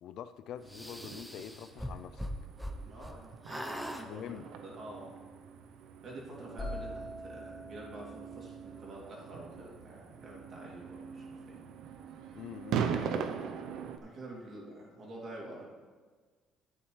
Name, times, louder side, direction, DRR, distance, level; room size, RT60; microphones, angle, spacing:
voice 1, 0.0-2.3 4.0-4.4 12.3-13.3, left 9 dB, 65° left, 13 dB, 0.3 m, -45 dB
sound 1, 0.6-14.0, right 7 dB, 70° right, 0.7 m, -41 dB
sound 2, 0.7-3.2 3.4-4.1, equal, ahead, 0.7 m, -40 dB
voice 2, 2.8-5.2 6.0-11.6 14.0-15.7, right 1 dB, 45° right, -4 dB, 2.7 m, -48 dB
sound 3, 6.6-10.4, left 1 dB, 20° left, 3.0 m, -45 dB
11.0 x 9.0 x 3.2 m, 1.5 s
cardioid pair, 130°, 0 cm